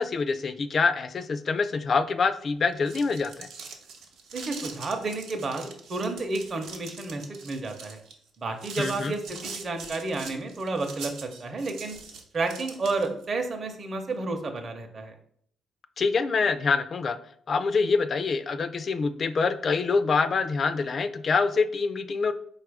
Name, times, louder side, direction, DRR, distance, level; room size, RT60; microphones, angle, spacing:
voice 1, 0.0-3.5 8.8-9.2 16.0-17.2 17.5-22.3, left 4 dB, 45° left, 11 dB, 0.3 m, -25 dB
sound 1, 2.6-13.2, right 5 dB, 85° right, 0.7 m, -43 dB
voice 2, 4.3-8.0 8.4-12.0 12.3-15.1, right 3 dB, 40° right, 4 dB, 0.6 m, -31 dB
4.4 x 2.4 x 4.7 m, 0.63 s
cardioid pair, 90°, 0 cm